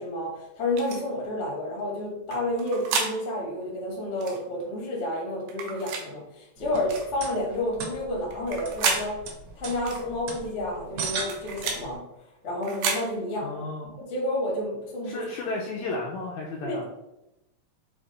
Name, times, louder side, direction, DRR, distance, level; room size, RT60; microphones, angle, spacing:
voice 1, 0.0-9.2 9.5-12.0 12.4-13.6 14.0-15.3 16.6-16.9, left 1 dB, 65° left, -4 dB, 0.6 m, -30 dB
sound 1, 0.8-1.0 2.3-3.1 4.2-4.4 5.5-6.1 6.9-7.1 8.3-9.0 9.9-10.0 11.0-11.8 12.6-13.0, right 5 dB, 85° right, 2.4 m, -30 dB
sound 2, 6.6-11.9, right 4 dB, 70° right, 1.7 m, -38 dB
voice 2, 13.4-13.9 15.0-16.9, left 2 dB, 85° left, -1 dB, 1.6 m, -33 dB
5.9 x 2.1 x 3.8 m, 0.89 s
omnidirectional pair, 3.7 m